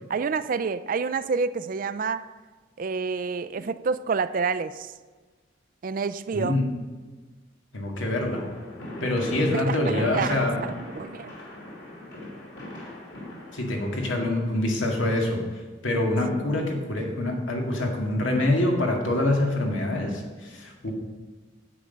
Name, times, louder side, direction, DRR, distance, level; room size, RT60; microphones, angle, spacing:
voice 1, 0.1-2.3 2.8-4.9 5.8-6.6 9.5-11.4 16.3-16.5, right 5 dB, 45° right, 14 dB, 0.4 m, -28 dB
voice 2, 7.7-8.4 9.0-10.5 13.5-15.4 15.8-20.9, left 1 dB, 90° left, 1 dB, 2.1 m, -25 dB
sound 1, 8.4-14.2, left 1 dB, 60° left, 3.0 m, -40 dB
10.0 x 7.7 x 5.2 m, 1.4 s
head